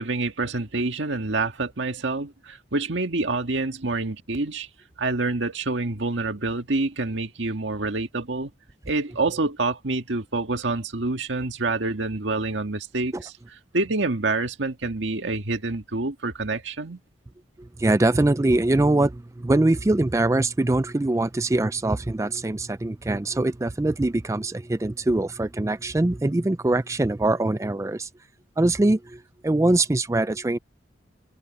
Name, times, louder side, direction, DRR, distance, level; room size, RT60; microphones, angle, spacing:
voice 1, 0.0-4.7 5.0-8.5 8.9-13.3 13.7-17.0, right 3 dB, 85° right, 1.7 m, -27 dB
voice 2, 17.6-28.1 28.6-30.6, right 2 dB, 15° right, 0.4 m, -23 dB
head